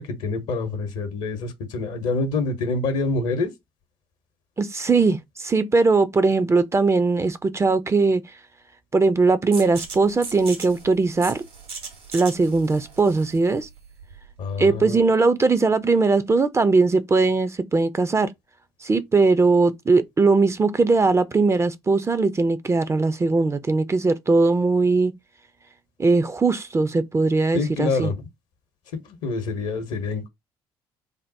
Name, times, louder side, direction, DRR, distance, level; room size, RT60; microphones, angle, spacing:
voice 1, 0.0-3.5 14.4-15.1 27.5-28.1 29.0-30.3, left 3 dB, 60° left, 0.8 m, -26 dB
voice 2, 4.6-8.2 8.9-11.4 12.1-13.7 14.6-18.3 18.8-25.1 26.0-28.1, right 3 dB, 20° right, 0.4 m, -20 dB
sound 1, 9.5-15.0, right 4 dB, 75° right, 1.7 m, -39 dB
3.5 x 2.0 x 4.0 m
figure-of-eight pair, 45°, 13 cm